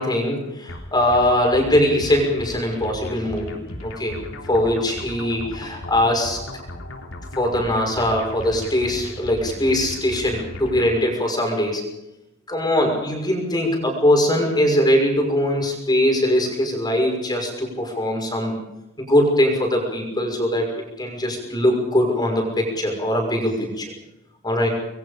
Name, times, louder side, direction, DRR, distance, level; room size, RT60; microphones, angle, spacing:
voice 1, 0.0-4.2 4.5-6.4 7.4-11.8 12.5-18.5 19.0-20.7 21.0-23.9 24.4-24.7, left 1 dB, 20° left, 1 dB, 6.1 m, -21 dB
sound 1, 0.7-11.0, left 1 dB, 85° left, 3.5 m, -36 dB
27.5 x 21.5 x 5.2 m, 0.92 s
head